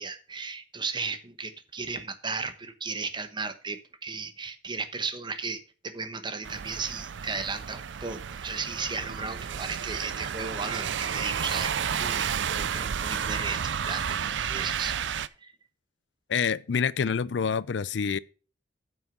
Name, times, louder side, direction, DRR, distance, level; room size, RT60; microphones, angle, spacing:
voice 1, 0.0-14.2 14.4-15.0 15.4-15.5, right 4 dB, 25° right, 1.0 m, -35 dB
sound 1, 6.4-15.3, right 8 dB, 85° right, 0.5 m, -31 dB
voice 2, 16.3-18.2, left 6 dB, 80° left, 0.5 m, -27 dB
9.1 x 6.2 x 5.8 m
head